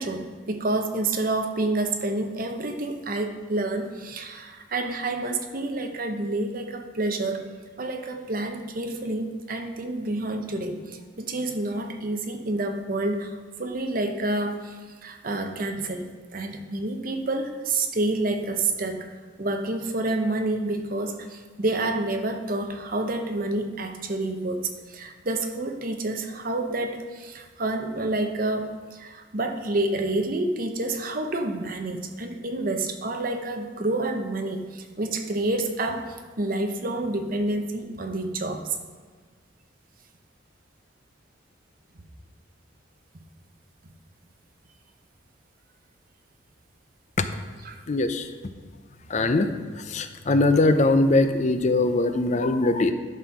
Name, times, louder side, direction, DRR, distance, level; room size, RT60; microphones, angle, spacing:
voice 1, 0.0-7.4 7.8-19.1 19.4-38.8 47.6-47.8, right 2 dB, 45° right, 6 dB, 0.8 m, -28 dB
voice 2, 47.9-48.3 49.1-49.5 49.9-52.9, left 2 dB, 40° left, 9 dB, 0.5 m, -21 dB
11.5 x 4.3 x 6.0 m, 1.5 s
head